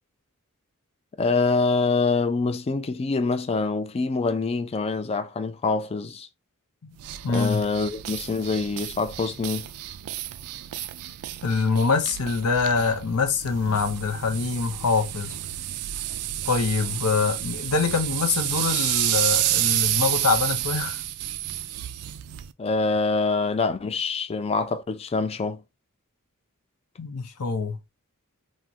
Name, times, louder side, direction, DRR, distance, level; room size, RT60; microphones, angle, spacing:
voice 1, 1.2-6.3 7.3-9.7 22.6-25.6, left 4 dB, 25° left, 0.3 m, -25 dB
sound 1, 7.0-22.5, right 13 dB, 75° right, 0.3 m, -30 dB
voice 2, 7.2-7.6 11.4-15.3 16.4-21.0 27.0-27.8, left 4 dB, 90° left, 0.7 m, -24 dB
3.6 x 2.1 x 2.7 m
head